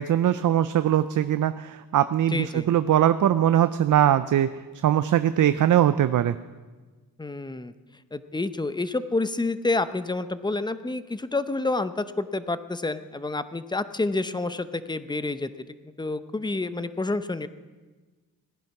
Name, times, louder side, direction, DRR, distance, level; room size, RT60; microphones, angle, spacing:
voice 1, 0.0-4.5 4.8-6.4, right 11 dB, 55° right, 12 dB, 0.5 m, -21 dB
voice 2, 2.3-2.7 7.2-7.7 8.1-17.5, left 2 dB, 10° left, 12 dB, 0.7 m, -29 dB
18.0 x 10.5 x 5.9 m, 1.3 s
cardioid pair, 90°, 37 cm